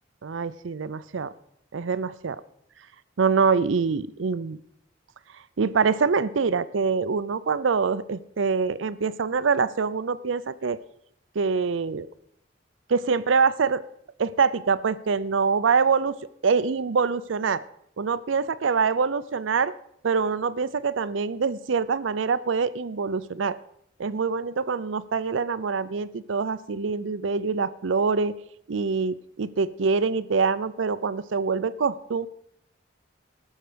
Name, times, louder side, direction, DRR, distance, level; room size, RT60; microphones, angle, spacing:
voice 1, 0.2-1.3 1.7-2.4 3.2-4.6 5.6-10.8 11.4-12.1 12.9-13.8 14.2-16.2 16.4-17.6 18.0-19.7 20.0-23.6 24.0-28.3 28.7-32.3, right 5 dB, 90° right, 15 dB, 0.5 m, -25 dB
19.5 x 6.5 x 5.1 m, 0.72 s
head